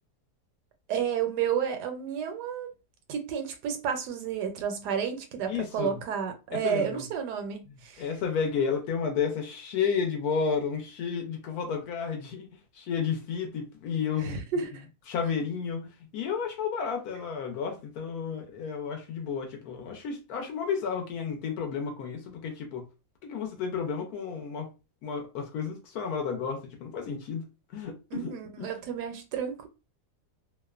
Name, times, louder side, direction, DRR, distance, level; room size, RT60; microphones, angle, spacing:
voice 1, 0.9-2.7 3.1-8.0 14.2-14.8 28.1-29.7, right 7 dB, 80° right, 1.1 m, -31 dB
voice 2, 5.5-6.0 6.5-7.0 8.0-12.5 12.7-14.7 15.1-22.8 23.2-24.7 25.0-27.4 27.7-28.3 28.6-28.8, left 6 dB, 70° left, 1.0 m, -32 dB
2.8 x 2.1 x 2.3 m
omnidirectional pair, 1.8 m